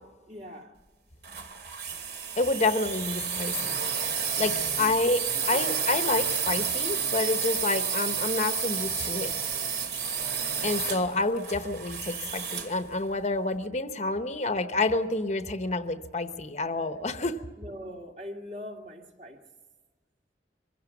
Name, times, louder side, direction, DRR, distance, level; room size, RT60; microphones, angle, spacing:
voice 1, 0.3-0.7 4.7-5.0 17.6-19.4, equal, 40° right, 1 dB, 2.5 m, -41 dB
sound 1, 1.2-12.8, right 6 dB, 60° right, 2.4 m, -31 dB
voice 2, 2.4-3.8 4.4-9.3 10.6-17.4, left 2 dB, 40° left, 9 dB, 1.0 m, -28 dB
23.5 x 16.0 x 7.1 m, 1.3 s
head